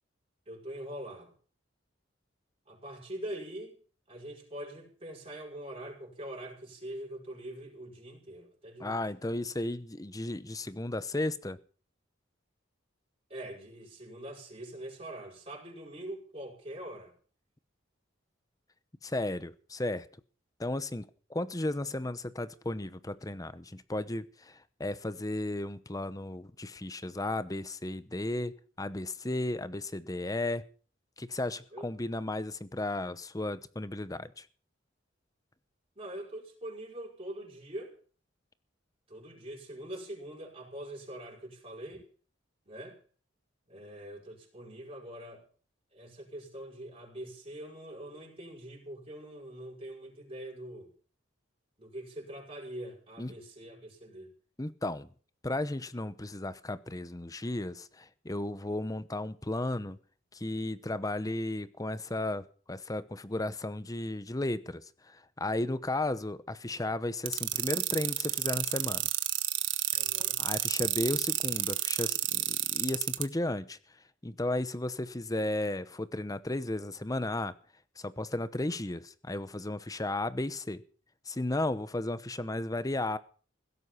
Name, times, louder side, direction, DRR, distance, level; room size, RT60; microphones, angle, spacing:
voice 1, 0.5-1.3 2.7-3.8 4.1-9.0 13.3-17.1 31.7-31.8 36.0-37.9 39.1-42.1 42.7-43.0 43.7-45.4 45.9-50.9 51.8-54.3 69.9-70.5, right 1 dB, 30° right, 5.3 m, -43 dB
voice 2, 8.8-11.6 19.0-20.1 20.6-30.6 31.2-34.5 53.2-53.3 54.6-55.1 55.4-60.0 60.3-69.0 70.4-73.8 74.2-77.5 78.0-80.8 81.3-83.2, left 1 dB, 20° left, 0.8 m, -34 dB
sound 1, 67.3-73.2, right 14 dB, 80° right, 1.4 m, -29 dB
16.5 x 13.0 x 5.7 m
head